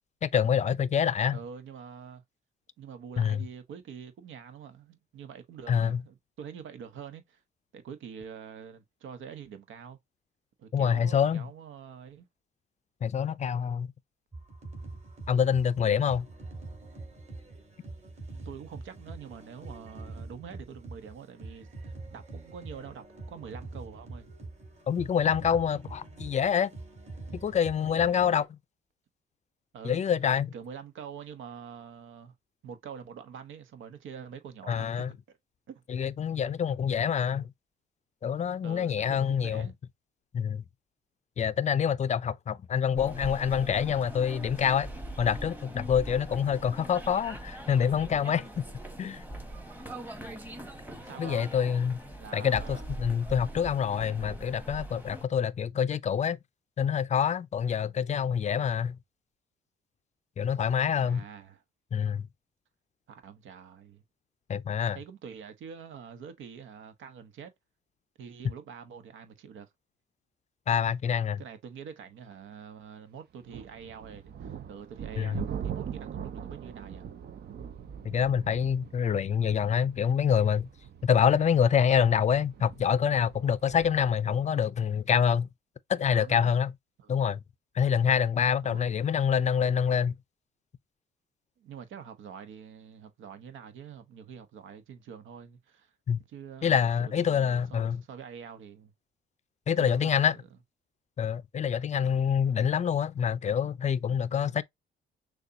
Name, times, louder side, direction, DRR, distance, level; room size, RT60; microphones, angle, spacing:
voice 1, 0.2-1.4 3.2-3.4 5.7-6.0 10.7-11.5 13.0-13.9 15.3-16.3 24.9-26.7 27.3-28.6 29.8-30.5 34.7-35.1 35.9-37.5 38.2-39.7 40.3-40.6 41.4-44.9 45.2-48.6 49.0-49.2 51.2-52.0 52.3-56.4 56.8-59.0 60.4-61.2 61.9-62.2 64.5-65.0 70.7-71.4 75.2-75.4 78.0-80.7 81.0-85.5 85.9-86.7 87.1-87.4 87.8-90.1 96.1-96.2 96.6-98.0 99.7-100.3 101.2-104.6, left 7 dB, 35° left, 0.4 m, -26 dB
voice 2, 1.3-2.2 2.8-7.4 7.7-10.0 10.6-12.3 18.3-24.3 29.7-30.0 30.5-32.3 32.6-35.4 35.7-35.8 38.6-39.7 51.0-51.5 52.2-52.8 61.0-61.6 63.1-64.0 64.9-67.5 68.2-69.7 71.4-77.1 86.1-86.5 87.0-87.2 88.6-88.9 91.6-95.9 96.3-98.9 99.8-100.5 102.0-102.3, right 7 dB, 75° right, 1.0 m, -45 dB
sound 1, 14.3-28.4, right 2 dB, 35° right, 2.5 m, -44 dB
sound 2, 43.0-55.3, right 1 dB, 10° right, 1.3 m, -42 dB
sound 3, 73.4-84.1, right 8 dB, 55° right, 0.8 m, -41 dB
6.5 x 2.3 x 2.7 m
cardioid pair, 90°, 20 cm